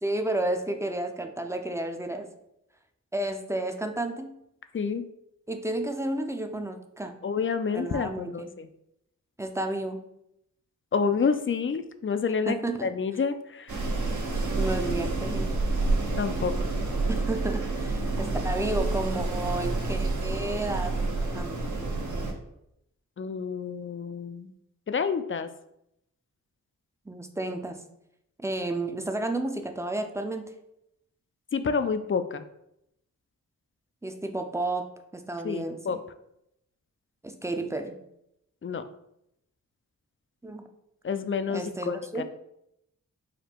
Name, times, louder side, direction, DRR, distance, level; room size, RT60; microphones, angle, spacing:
voice 1, 0.0-2.3 3.1-4.3 5.5-7.2 7.7-8.5 9.4-10.0 12.5-12.9 14.6-15.5 17.1-21.0 21.3-21.6 27.1-27.8 28.4-30.5 34.0-34.8 35.1-35.8 37.2-38.0 40.4-40.6 41.5-42.2, right 1 dB, 10° right, 6 dB, 0.6 m, -31 dB
voice 2, 4.7-5.1 7.2-8.7 10.9-13.8 16.2-16.5 23.2-24.5 24.9-25.5 31.5-32.4 35.4-36.0 38.6-38.9 41.0-42.2, left 5 dB, 40° left, 10 dB, 0.4 m, -29 dB
Wind, 13.7-22.3, right 3 dB, 60° right, 1.0 m, -28 dB
5.0 x 2.2 x 4.4 m, 0.80 s
cardioid pair, 50°, 33 cm